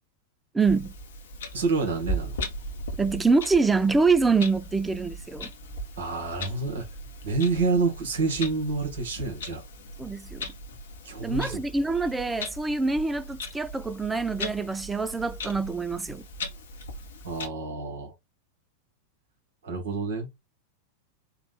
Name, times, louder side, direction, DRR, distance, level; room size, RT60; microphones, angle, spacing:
voice 1, 0.5-0.9 3.0-5.5 10.0-10.5 11.2-16.3, right 4 dB, 10° right, 0.3 m, -25 dB
Clock, 0.6-17.5, equal, 60° left, 0.8 m, -38 dB
voice 2, 1.5-2.3 6.0-6.8 7.2-9.6 11.0-11.6 17.2-18.1 19.6-20.3, right 4 dB, 60° right, 1.6 m, -28 dB
3.9 x 2.3 x 3.4 m
figure-of-eight pair, 90°, 0 cm